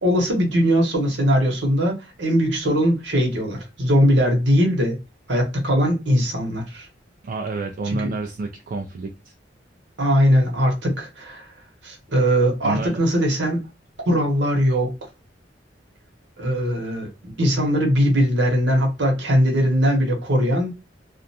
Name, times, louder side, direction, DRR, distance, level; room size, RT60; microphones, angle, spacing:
voice 1, 0.0-5.0 5.3-6.9 7.9-8.1 10.0-11.5 11.8-13.6 14.1-14.9 16.4-20.7, equal, 70° right, 0.9 m, -20 dB
voice 2, 7.2-9.3 12.6-13.0, right 3 dB, 50° right, 0.3 m, -29 dB
2.4 x 2.2 x 2.6 m
head